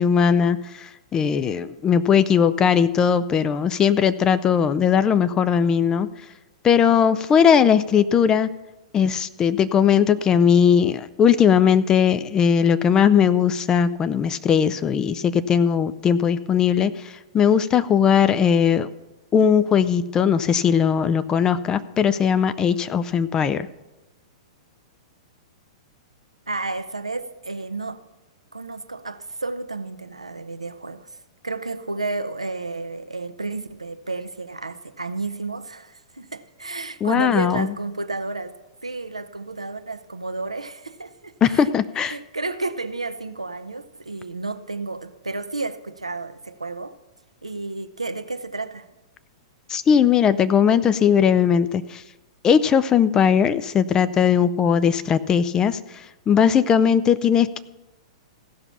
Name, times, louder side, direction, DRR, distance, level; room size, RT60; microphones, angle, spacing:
voice 1, 0.0-6.1 6.6-8.5 8.9-18.9 19.3-23.7 37.0-37.7 41.4-42.2 49.7-52.0 52.4-55.8 56.3-57.6, left 7 dB, 20° left, 0.5 m, -19 dB
voice 2, 26.5-28.0 28.5-31.2 31.4-41.7 42.1-47.0 47.4-48.9, right 3 dB, 85° right, 0.7 m, -31 dB
15.5 x 5.9 x 6.9 m
figure-of-eight pair, 105°, 3 cm